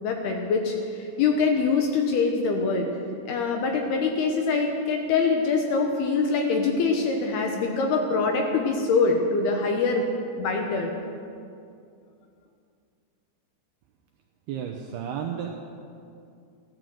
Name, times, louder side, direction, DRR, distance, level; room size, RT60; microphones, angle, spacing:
voice 1, 0.0-2.9 3.3-10.1 10.4-10.9, left 4 dB, 70° left, 3 dB, 2.6 m, -24 dB
voice 2, 14.5-15.6, right 8 dB, 80° right, 2 dB, 2.4 m, -32 dB
14.5 x 12.5 x 7.7 m, 2.4 s
omnidirectional pair, 5.6 m